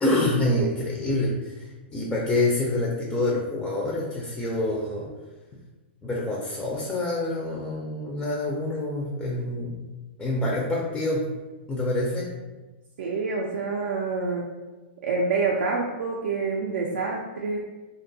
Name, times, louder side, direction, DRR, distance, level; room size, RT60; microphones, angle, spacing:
voice 1, 0.0-5.1 6.0-9.7 10.2-11.3 11.7-12.3, left 2 dB, 10° left, -3 dB, 0.3 m, -26 dB
voice 2, 13.0-14.5 15.0-17.6, right 4 dB, 75° right, -2 dB, 0.4 m, -27 dB
2.5 x 2.2 x 2.6 m, 1.2 s
hypercardioid pair, 140°, 6 cm